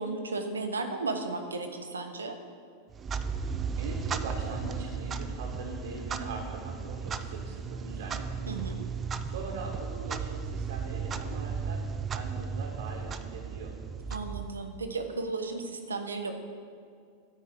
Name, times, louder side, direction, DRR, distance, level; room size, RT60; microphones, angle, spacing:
voice 1, 0.0-2.3 8.5-8.8 14.1-16.3, right 3 dB, 90° right, 6 dB, 0.9 m, -34 dB
Clock, 2.9-14.9, right 6 dB, 25° right, 0.5 m, -35 dB
voice 2, 3.8-8.4 9.3-11.8 12.1-13.7, right 3 dB, 75° right, 0 dB, 1.5 m, -41 dB
9.9 x 4.4 x 7.6 m, 2.3 s
hypercardioid pair, 95°, 0 cm